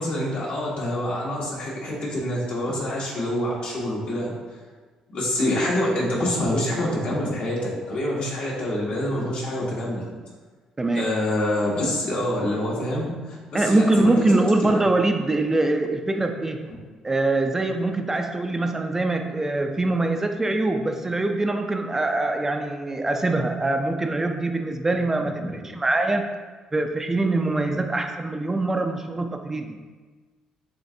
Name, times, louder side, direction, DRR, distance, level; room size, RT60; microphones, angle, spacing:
voice 1, 0.0-4.3 5.1-10.1 10.9-14.8 25.4-25.7, left 1 dB, 65° left, -4 dB, 1.3 m, -26 dB
voice 2, 10.8-11.1 13.5-16.7 17.0-26.3 26.7-29.8, right 2 dB, 20° right, 5 dB, 0.3 m, -23 dB
7.1 x 2.5 x 2.6 m, 1.4 s
cardioid pair, 80°, 2 cm